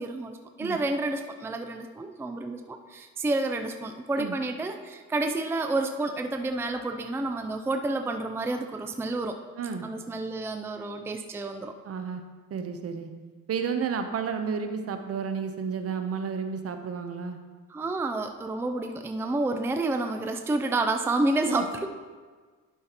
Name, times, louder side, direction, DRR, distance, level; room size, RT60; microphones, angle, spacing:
voice 1, 0.0-9.4 9.8-11.7 17.7-21.9, right 2 dB, 10° right, 6 dB, 0.4 m, -29 dB
voice 2, 11.8-12.2 12.5-13.1 13.5-17.4 21.4-21.6, right 6 dB, 50° right, 7 dB, 0.8 m, -31 dB
11.0 x 5.6 x 2.9 m, 1.5 s
cardioid pair, 90°, 30 cm